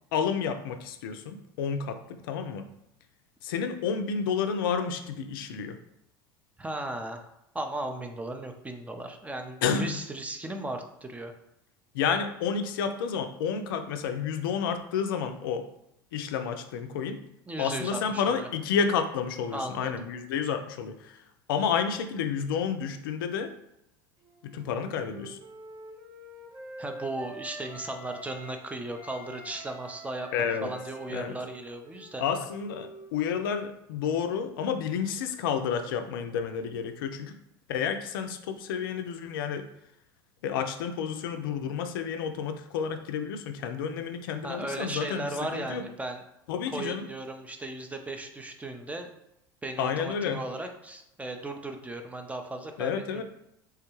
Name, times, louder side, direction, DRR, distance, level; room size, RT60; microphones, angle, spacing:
voice 1, 0.1-2.7 3.4-5.8 9.6-10.0 11.9-15.7 16.1-17.2 17.6-21.2 21.5-23.5 24.4-25.4 30.3-30.7 31.1-31.3 32.2-37.3 37.7-39.7 40.4-45.8 46.5-47.1 49.8-50.4 52.8-53.2, left 7 dB, 75° left, 7 dB, 0.4 m, -30 dB
voice 2, 6.6-7.3 7.5-11.3 17.5-18.5 19.5-20.1 26.8-32.2 44.4-46.2 46.7-49.1 49.6-53.2, right 2 dB, 10° right, 5 dB, 0.4 m, -36 dB
Wind instrument woodwind instrument, 24.2-28.6 28.9-33.4, right 1 dB, 35° right, 0.8 m, -46 dB
3.3 x 2.2 x 3.0 m, 0.81 s
hypercardioid pair, 80°, 12 cm